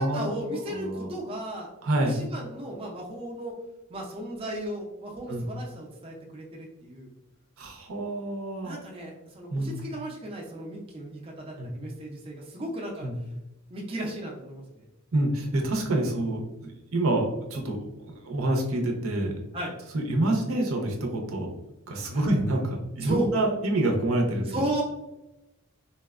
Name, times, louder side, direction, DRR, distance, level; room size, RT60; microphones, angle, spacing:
voice 1, 0.0-1.7 2.1-3.6 3.9-7.1 8.6-13.1 13.7-14.9 18.4-18.6 19.5-19.7 22.1-22.3 23.0-23.3 24.5-24.8, right 1 dB, 25° right, -3 dB, 0.4 m, -35 dB
voice 2, 0.7-1.1 1.8-2.2 5.3-5.4 7.6-8.8 9.5-9.7 11.6-11.7 13.0-13.2 15.1-17.8 18.0-19.3 19.9-21.5 21.9-24.4, right 1 dB, 70° right, 1 dB, 0.6 m, -27 dB
4.1 x 2.1 x 2.3 m, 0.94 s
head